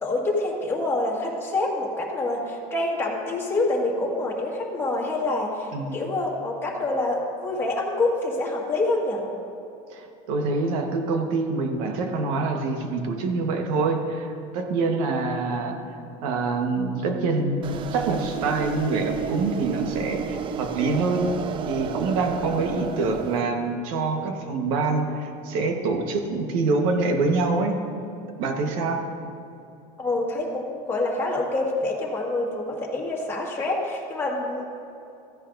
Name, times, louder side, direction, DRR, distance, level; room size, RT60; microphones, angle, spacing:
voice 1, 0.0-9.2 22.5-22.6 28.4-28.7 30.0-34.7, left 2 dB, 15° left, -3 dB, 1.7 m, -26 dB
voice 2, 5.7-6.0 9.9-15.8 16.2-21.3 21.6-27.7 28.4-29.0, right 3 dB, 85° right, 4 dB, 1.3 m, -25 dB
sound 1, 17.6-23.4, right 7 dB, 30° right, 0.4 m, -32 dB
15.0 x 10.0 x 2.6 m, 2.8 s
cardioid pair, 145°, 17 cm